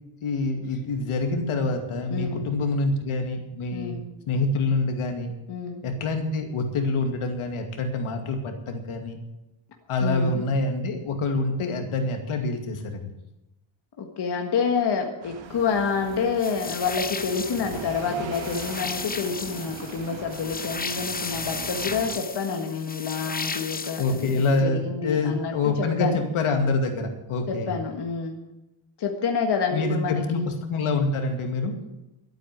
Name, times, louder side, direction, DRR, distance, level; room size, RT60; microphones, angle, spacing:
voice 1, 0.2-4.0 4.3-5.3 5.8-9.2 9.9-13.0 24.0-27.7 29.7-31.8, left 3 dB, 80° left, 5 dB, 2.3 m, -26 dB
voice 2, 2.1-2.5 3.7-4.0 5.5-5.8 10.0-10.5 14.0-26.2 27.5-28.4 29.0-30.5, left 5 dB, 50° left, 3 dB, 1.7 m, -28 dB
sound 1, 15.2-22.2, right 6 dB, 65° right, 1.7 m, -40 dB
sound 2, 16.4-24.6, left 4 dB, 20° left, 0.7 m, -35 dB
12.5 x 9.1 x 9.1 m, 0.95 s
wide cardioid pair, 145°, 49 cm